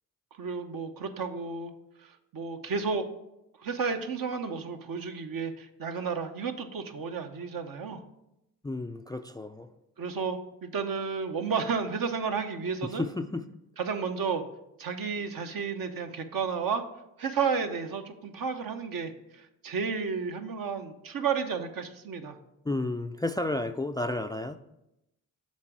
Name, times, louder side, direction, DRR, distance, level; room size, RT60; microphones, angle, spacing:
voice 1, 0.4-1.7 2.0-3.1 3.6-8.0 10.0-13.0 13.8-14.4 14.8-16.8 17.2-22.4, right 5 dB, 55° right, 6 dB, 0.9 m, -32 dB
voice 2, 8.6-9.7 12.8-13.4 22.6-24.6, left 2 dB, 10° left, 9 dB, 0.3 m, -32 dB
7.3 x 4.1 x 4.6 m, 0.86 s
supercardioid pair, 40°, 40 cm